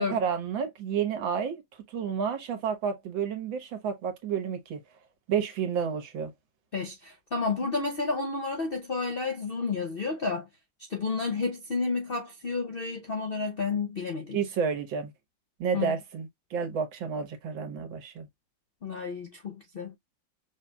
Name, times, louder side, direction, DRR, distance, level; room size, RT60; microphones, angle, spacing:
voice 1, 0.0-1.6 1.9-4.8 5.3-6.3 14.3-15.1 15.6-18.3, right 6 dB, 85° right, 1.9 m, -30 dB
voice 2, 6.7-10.5 10.9-14.4 15.7-15.9 18.8-20.0, left 4 dB, 55° left, 0.6 m, -31 dB
5.7 x 2.8 x 2.3 m
omnidirectional pair, 2.0 m